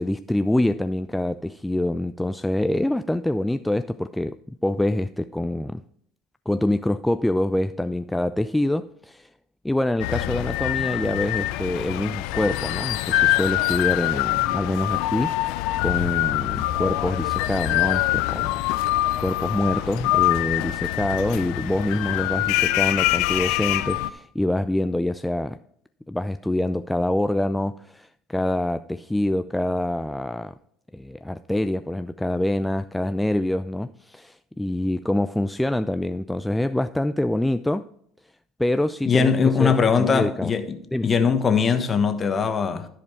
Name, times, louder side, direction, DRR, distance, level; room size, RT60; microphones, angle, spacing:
voice 1, 0.0-5.8 6.5-9.3 9.6-18.5 19.2-25.6 26.1-30.6 30.9-37.9 38.6-39.3 39.6-40.5 40.9-41.1, left 1 dB, 5° left, 0.3 m, -25 dB
sound 1, 10.0-24.1, left 17 dB, 70° left, 0.4 m, -24 dB
voice 2, 39.0-42.9, left 6 dB, 35° left, 1.3 m, -21 dB
13.5 x 4.9 x 4.5 m
hypercardioid pair, 70°, 0 cm